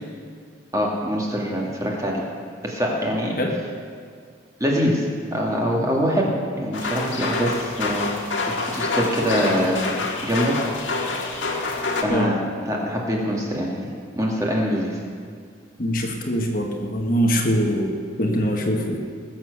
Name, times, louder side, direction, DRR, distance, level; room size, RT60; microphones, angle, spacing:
voice 1, 0.7-2.2 2.6-3.3 4.6-8.1 8.6-9.8 10.2-10.6 12.0-15.0, equal, 15° right, -2 dB, 2.2 m, -24 dB
sound 1, 6.7-12.0, left 3 dB, 85° left, 1.8 m, -27 dB
voice 2, 15.8-19.0, equal, 45° left, 1 dB, 1.5 m, -23 dB
20.5 x 7.5 x 6.6 m, 2.1 s
head